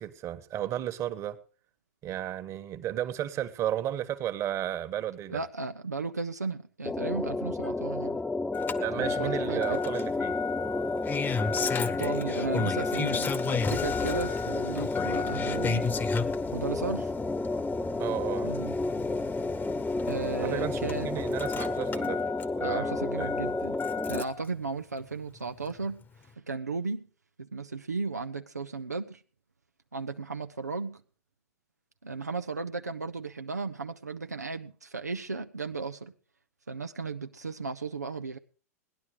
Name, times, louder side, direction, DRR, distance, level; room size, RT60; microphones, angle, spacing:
voice 1, 0.0-1.4 2.0-5.4 8.8-10.4 18.0-18.5 20.4-22.2 22.6-23.3, right 11 dB, 35° right, 1.5 m, -33 dB
voice 2, 5.3-8.2 9.0-9.8 11.8-15.9 16.5-17.1 18.4-18.7 20.1-21.1 22.6-23.8 24.0-26.0 26.4-27.0 27.4-29.2 29.9-31.0 32.0-36.1 36.7-38.4, right 4 dB, 85° right, 0.8 m, -35 dB
sound 1, 6.9-24.2, left 3 dB, 5° left, 0.6 m, -31 dB
Engine starting, 8.5-24.5 25.7-25.8, left 5 dB, 20° left, 1.2 m, -34 dB
18.5 x 11.0 x 5.0 m
figure-of-eight pair, 90°, 9 cm